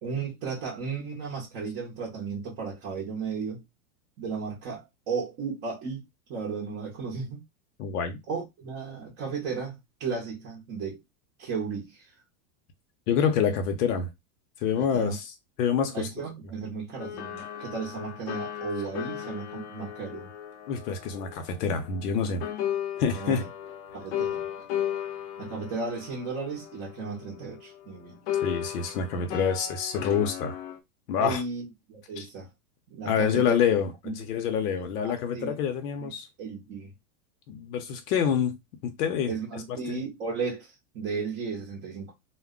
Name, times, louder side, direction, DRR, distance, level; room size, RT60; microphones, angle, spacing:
voice 1, 0.0-3.6 4.2-6.0 6.3-7.4 8.3-11.0 11.4-12.1 14.8-15.2 15.9-20.3 23.1-23.5 23.9-24.5 25.4-28.2 29.1-29.5 31.2-32.5 32.9-33.4 34.0-34.1 35.0-35.5 36.0-36.1 36.4-36.9 39.3-42.1, right 5 dB, 25° right, 0.7 m, -35 dB
voice 2, 7.8-8.2 13.1-14.1 14.6-16.1 20.7-22.5 23.0-23.4 28.4-30.6 31.1-31.4 32.2-32.3 33.1-36.3 37.5-38.6 38.8-40.0, left 7 dB, 85° left, 0.8 m, -27 dB
sound 1, 17.0-22.1 22.4-27.9 28.3-30.8, left 10 dB, 50° left, 0.5 m, -35 dB
2.2 x 2.1 x 3.6 m
supercardioid pair, 165°, 45 cm